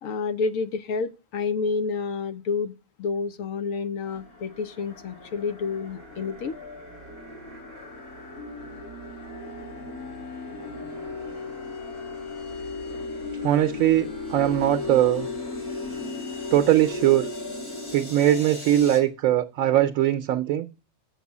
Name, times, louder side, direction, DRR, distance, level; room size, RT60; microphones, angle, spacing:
voice 1, 0.0-6.6, left 4 dB, 70° left, 1.0 m, -29 dB
sound 1, 4.1-19.0, left 3 dB, 85° left, 3.9 m, -36 dB
voice 2, 13.4-15.3 16.5-17.3 17.9-20.7, right 12 dB, 70° right, 1.0 m, -21 dB
7.4 x 6.0 x 7.2 m
omnidirectional pair, 1.5 m